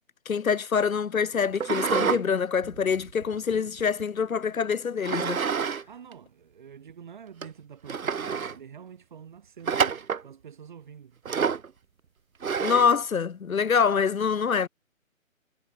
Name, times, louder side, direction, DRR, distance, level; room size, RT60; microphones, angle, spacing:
voice 1, 0.3-5.5 12.6-14.7, left 6 dB, 80° left, 0.8 m, -25 dB
sound 1, 1.6-2.2 2.6-4.0 5.0-5.8 6.1-6.2 6.9-7.0 7.4-7.5 7.9-8.6 9.7-10.3 11.3-11.7 12.4-13.0, right 6 dB, 85° right, 0.8 m, -28 dB
voice 2, 5.9-11.2, right 7 dB, 35° right, 5.6 m, -47 dB
figure-of-eight pair, 155°, 41 cm